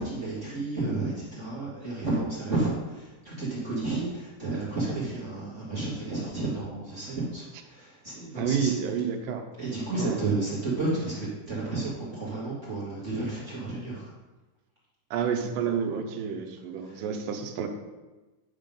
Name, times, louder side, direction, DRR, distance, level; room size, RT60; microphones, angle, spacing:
voice 1, 0.0-8.7 9.6-14.1 16.8-17.0, right 2 dB, 40° right, -8 dB, 1.1 m, -31 dB
voice 2, 8.4-9.5 9.9-10.2 15.1-17.7, right 7 dB, 80° right, 4 dB, 2.2 m, -29 dB
9.7 x 3.7 x 5.3 m, 1.2 s
omnidirectional pair, 4.0 m